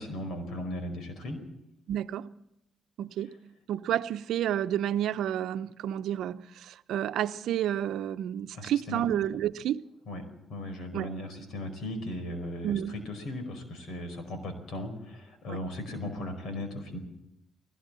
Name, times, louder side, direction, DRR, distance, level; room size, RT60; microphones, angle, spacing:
voice 1, 0.0-1.4 8.5-9.0 10.1-10.2 10.5-17.0, left 1 dB, 75° left, 4.9 m, -37 dB
voice 2, 1.9-2.3 3.0-3.3 3.7-9.8 10.9-11.1 12.6-12.9 15.5-15.6, right 11 dB, 80° right, 0.7 m, -30 dB
20.0 x 17.5 x 7.6 m
cardioid pair, 90°, 0 cm